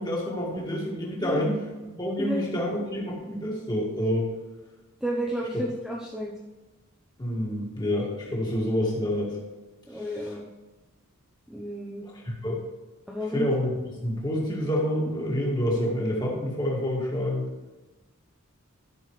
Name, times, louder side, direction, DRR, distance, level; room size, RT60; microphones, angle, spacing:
voice 1, 0.0-4.3 7.2-9.4 9.9-10.3 12.0-12.6 13.3-13.7 14.0-17.5, left 1 dB, 20° left, -3 dB, 2.1 m, -28 dB
voice 2, 2.2-2.6 5.0-6.3 9.9-10.5 11.5-12.0 13.1-13.5, equal, ahead, -4 dB, 0.8 m, -32 dB
13.0 x 6.4 x 3.3 m, 1.2 s
head